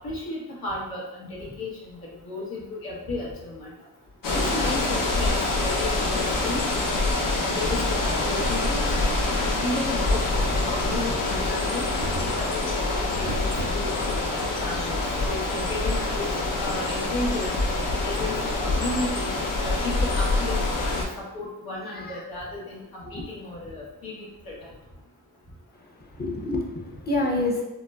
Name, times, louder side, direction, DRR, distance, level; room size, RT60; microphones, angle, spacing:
voice 1, 0.0-1.9 2.2-3.7 4.3-6.6 7.4-8.8 9.4-11.9 12.3-13.3 13.7-16.2 16.6-17.5 18.0-19.3 19.6-20.6 20.8-24.7, left 2 dB, 85° left, -5 dB, 1.0 m, -33 dB
sound 1, 4.2-21.1, left 2 dB, 65° left, 0.6 m, -25 dB
sound 2, 9.7-15.4 16.3-16.4 16.6-16.7, right 4 dB, 60° right, 0.5 m, -42 dB
voice 2, 26.1-27.6, left 2 dB, 30° left, 0 dB, 0.7 m, -28 dB
3.9 x 2.1 x 2.3 m, 0.98 s
cardioid pair, 55°, 35 cm